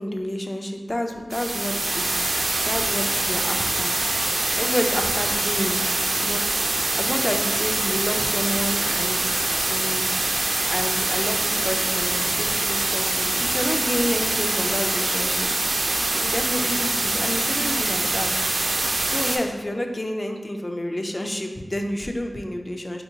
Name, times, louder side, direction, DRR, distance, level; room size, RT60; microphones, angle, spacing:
voice 1, 0.0-2.2 2.6-4.0 4.3-5.9 6.1-10.1 10.7-15.5 16.1-18.8 19.1-23.0, left 1 dB, 35° left, 4 dB, 0.3 m, -30 dB
sound 1, 1.3-19.4, right 2 dB, 75° right, 0.3 m, -24 dB
3.5 x 2.7 x 2.7 m, 1.3 s
wide cardioid pair, 45°, 0 cm